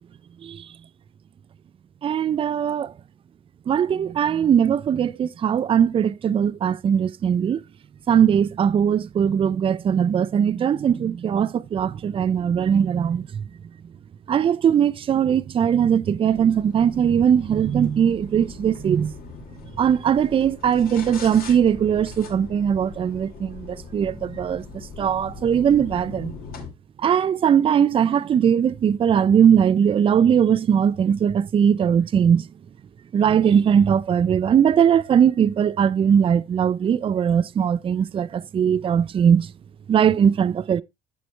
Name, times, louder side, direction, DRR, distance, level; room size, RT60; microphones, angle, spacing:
voice 1, 2.0-2.9 3.7-7.6 8.1-13.4 14.3-19.1 19.8-24.6 25.0-26.3 27.0-32.5 33.1-39.5 39.9-40.8, right 8 dB, 30° right, 0.4 m, -20 dB
sound 1, 16.3-26.7, left 4 dB, 60° left, 2.4 m, -40 dB
7.7 x 6.9 x 3.2 m
cardioid pair, 110°, 17 cm